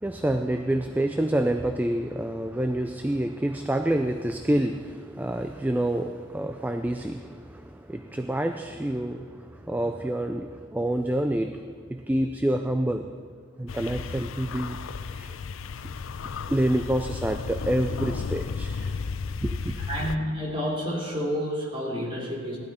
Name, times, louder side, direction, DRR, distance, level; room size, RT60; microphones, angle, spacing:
voice 1, 0.0-13.1 13.6-15.4 16.5-19.0 19.4-19.7, right 1 dB, 10° right, 7 dB, 0.4 m, -28 dB
sound 1, 13.7-20.2, left 5 dB, 85° left, 0.5 m, -33 dB
voice 2, 19.9-22.6, equal, 25° right, -4 dB, 3.3 m, -29 dB
17.0 x 12.5 x 4.3 m, 2.2 s
head